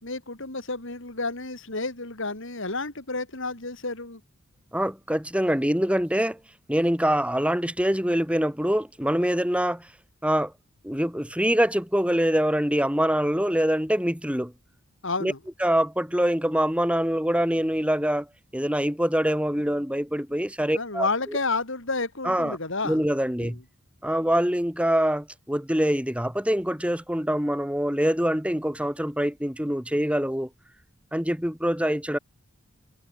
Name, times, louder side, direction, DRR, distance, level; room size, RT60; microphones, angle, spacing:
voice 1, 0.0-4.2 15.0-15.4 20.8-23.0 23.4-23.6, left 3 dB, 60° left, 3.7 m, -30 dB
voice 2, 4.7-6.4 6.7-9.9 10.2-10.5 10.8-14.5 15.2-15.3 15.6-18.3 18.5-21.4 22.2-22.6 22.8-23.6 24.0-30.5 31.1-32.2, equal, 5° right, 6.9 m, -24 dB
head